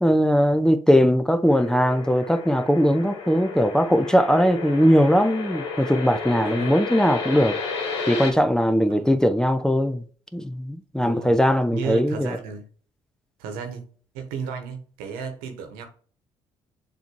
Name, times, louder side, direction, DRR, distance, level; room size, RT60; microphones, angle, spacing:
voice 1, 0.0-7.6 8.1-10.0 10.3-12.4, equal, 5° left, 0.6 m, -20 dB
sound 1, 1.5-8.3, left 4 dB, 90° left, 1.2 m, -32 dB
voice 2, 6.4-6.7 8.9-9.1 11.0-11.4 11.7-12.7 13.4-13.8 14.1-15.9, right 6 dB, 80° right, 1.2 m, -33 dB
6.9 x 3.0 x 4.5 m
hypercardioid pair, 55°, 15 cm